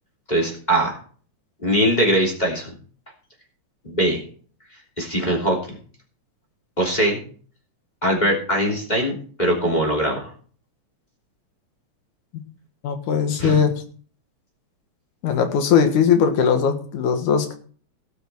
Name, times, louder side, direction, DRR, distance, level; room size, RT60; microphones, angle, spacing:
voice 1, 0.3-1.0 1.6-2.7 3.8-4.2 5.0-5.6 6.8-7.2 8.0-10.3 13.4-13.6, right 1 dB, 15° left, -1 dB, 3.1 m, -21 dB
voice 2, 12.8-13.7 15.2-17.6, left 7 dB, 90° left, 6 dB, 3.1 m, -19 dB
17.5 x 6.6 x 4.6 m, 0.44 s
omnidirectional pair, 3.4 m